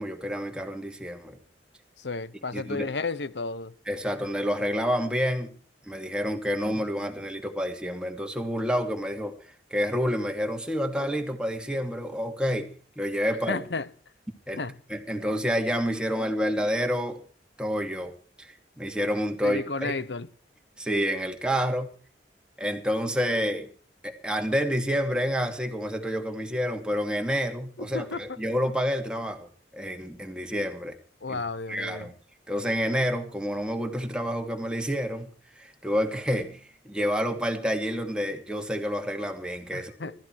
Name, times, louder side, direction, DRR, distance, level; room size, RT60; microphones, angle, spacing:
voice 1, 0.0-1.4 2.5-2.9 3.9-5.6 5.9-9.4 9.7-12.7 13.0-13.6 14.5-14.6 14.9-17.2 17.6-18.5 18.8-20.0 20.8-21.9 22.6-23.7 24.0-30.9 31.3-31.4 31.7-32.1 32.5-35.3 35.6-40.1, equal, 5° right, 2.5 m, -29 dB
voice 2, 2.0-3.7 13.5-13.9 14.5-14.8 19.4-20.3 27.9-28.2 31.2-32.1 39.7-40.1, left 3 dB, 70° left, 1.0 m, -32 dB
21.0 x 14.0 x 4.8 m
head